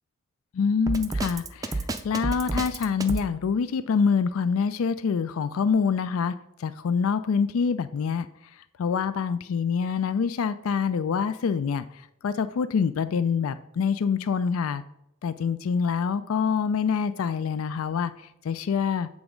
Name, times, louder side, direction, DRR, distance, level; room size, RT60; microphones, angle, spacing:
voice 1, 0.5-8.3 8.8-14.8 15.2-19.1, left 6 dB, 80° left, 13 dB, 0.4 m, -26 dB
Drum kit, 0.9-3.3, right 2 dB, 15° right, 0.5 m, -29 dB
7.9 x 3.5 x 5.1 m, 0.78 s
head